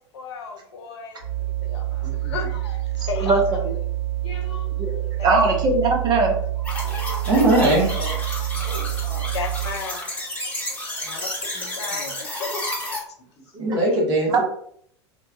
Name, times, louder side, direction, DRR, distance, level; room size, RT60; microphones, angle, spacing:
voice 1, 0.1-1.2 1.6-3.4 5.2-5.4 5.8-5.9 7.7-7.9 8.5-8.7 9.3-10.1 11.0-11.3 11.8-12.7 13.0-13.1, left 5 dB, 65° left, 3 dB, 0.5 m, -34 dB
sound 1, 1.2-9.9, right 15 dB, 70° right, 1.2 m, -27 dB
voice 2, 2.0-2.3 3.0-3.3 4.2-4.8 7.5-8.2 8.6-9.3 11.5-12.2 13.4-13.6, left 1 dB, 35° left, -2 dB, 1.0 m, -35 dB
voice 3, 4.8-6.3 14.3-14.4, right 3 dB, 30° right, 0 dB, 0.6 m, -20 dB
sound 2, 6.6-13.0, left 1 dB, 10° left, 0.9 m, -31 dB
voice 4, 6.8-7.9 13.6-14.4, right 2 dB, 50° right, -2 dB, 1.1 m, -20 dB
2.9 x 2.1 x 2.4 m, 0.65 s
figure-of-eight pair, 85°, 15 cm